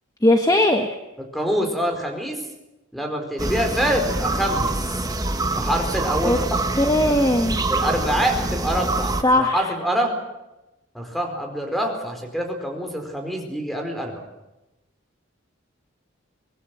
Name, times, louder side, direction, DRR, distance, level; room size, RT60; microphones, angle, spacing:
voice 1, 0.2-0.9 6.2-6.4 6.8-7.6 9.2-9.7, left 1 dB, 20° left, 5 dB, 1.4 m, -19 dB
voice 2, 1.3-2.4 2.9-4.7 5.5-6.6 7.7-10.1 10.9-14.2, equal, ahead, 3 dB, 4.6 m, -25 dB
sound 1, 3.4-9.2, right 2 dB, 20° right, 1.4 m, -25 dB
24.5 x 20.0 x 7.9 m, 0.98 s
head